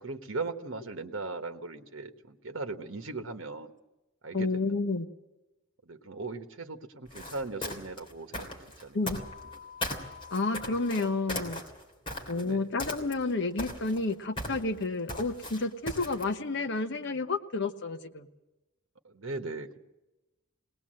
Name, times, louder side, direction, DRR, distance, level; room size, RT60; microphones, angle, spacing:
voice 1, 0.0-3.7 4.2-4.7 5.8-8.5 8.8-9.0 12.3-12.7 19.0-19.8, right 3 dB, 65° right, 6 dB, 1.2 m, -38 dB
voice 2, 4.3-5.1 8.9-9.2 10.3-11.6 12.3-18.3, left 3 dB, 60° left, 8 dB, 1.0 m, -30 dB
sound 1, 7.1-9.6 9.8-12.5 12.8-13.3 13.6-16.3, left 1 dB, 25° left, 3.2 m, -37 dB
sound 2, 9.1-11.1, left 6 dB, 45° right, 1.1 m, -48 dB
20.5 x 19.0 x 7.7 m, 1.0 s
head